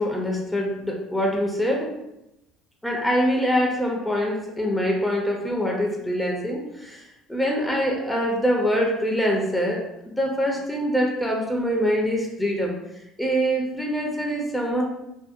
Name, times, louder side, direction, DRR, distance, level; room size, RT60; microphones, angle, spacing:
voice 1, 0.0-1.9 2.8-7.0 7.3-9.9 10.2-12.7 13.2-14.8, equal, 5° left, -1 dB, 0.5 m, -24 dB
2.6 x 2.1 x 2.4 m, 0.87 s
supercardioid pair, 100°, 0 cm